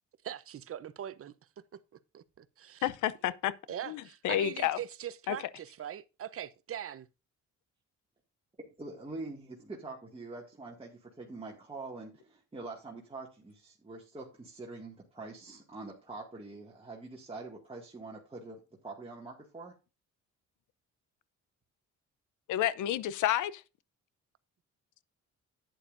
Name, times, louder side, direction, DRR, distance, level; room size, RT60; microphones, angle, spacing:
voice 1, 0.2-1.3 2.1-2.9 3.7-7.1, right 10 dB, 50° right, 0.8 m, -41 dB
voice 2, 2.8-3.5 3.9-4.8 5.3-5.4 22.5-23.6, left 12 dB, 80° left, 0.7 m, -30 dB
voice 3, 8.6-18.6 18.8-19.7, right 3 dB, 20° right, 2.0 m, -45 dB
11.0 x 9.2 x 2.6 m
cardioid pair, 90°, 30 cm